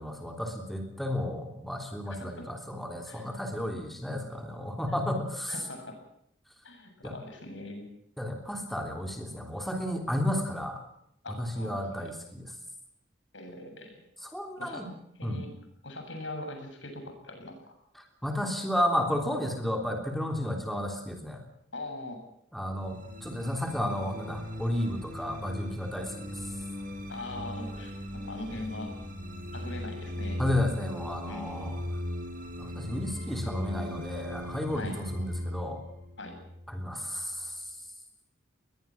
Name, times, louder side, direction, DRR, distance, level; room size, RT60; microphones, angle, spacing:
voice 1, 0.0-5.5 7.0-7.1 8.2-10.8 11.4-12.5 14.3-14.9 15.2-15.4 18.2-21.4 22.5-26.1 30.4-31.8 32.6-35.8 36.7-37.5, left 1 dB, ahead, 3 dB, 3.3 m, -32 dB
voice 2, 2.0-2.5 3.1-3.3 4.9-5.0 5.5-6.0 6.6-7.9 11.2-12.1 13.3-14.0 14.6-14.9 15.2-15.5 15.8-17.7 21.7-22.2 27.1-28.9 29.5-30.4 31.3-31.8 34.7-35.0 36.2-36.4, left 2 dB, 80° left, 5 dB, 7.8 m, -41 dB
sound 1, 22.8-37.2, equal, 45° right, 5.7 m, -38 dB
22.0 x 21.5 x 6.0 m, 0.74 s
head